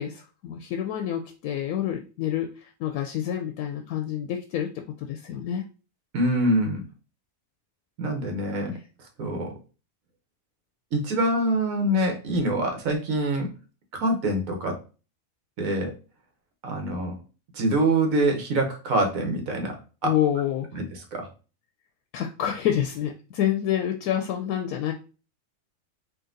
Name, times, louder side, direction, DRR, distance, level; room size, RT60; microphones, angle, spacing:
voice 1, 0.0-4.7 5.0-5.7 8.7-8.8 20.0-20.8 22.1-24.9, left 10 dB, 85° left, 4 dB, 1.1 m, -28 dB
voice 2, 6.1-6.8 8.0-8.7 9.2-9.5 10.9-13.5 13.9-14.7 15.6-15.9 16.6-17.2 17.5-19.7 20.0-20.1 20.8-20.9 21.1-21.3, right 1 dB, 70° right, 3 dB, 1.4 m, -25 dB
3.9 x 2.6 x 3.8 m, 0.34 s
omnidirectional pair, 1.5 m